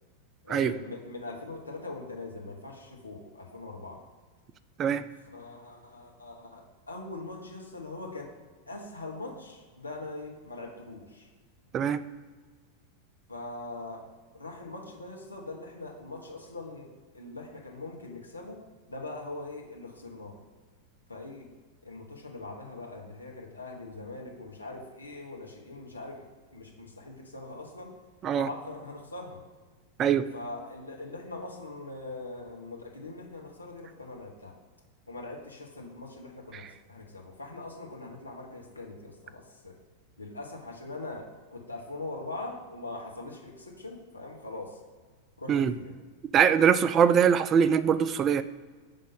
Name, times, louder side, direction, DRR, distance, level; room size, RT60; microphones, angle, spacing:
voice 1, 0.4-4.0 5.3-8.3 8.7-11.3 13.3-14.0 14.3-18.6 18.9-20.3 21.1-21.5 21.8-26.2 26.5-27.9 28.4-29.4 30.3-34.6 35.1-39.7 40.2-44.8 45.4-45.9, left 2 dB, 80° left, 1.2 m, -42 dB
voice 2, 46.3-48.4, right 8 dB, 30° right, 0.3 m, -22 dB
5.2 x 3.7 x 5.3 m
figure-of-eight pair, 90°, 0 cm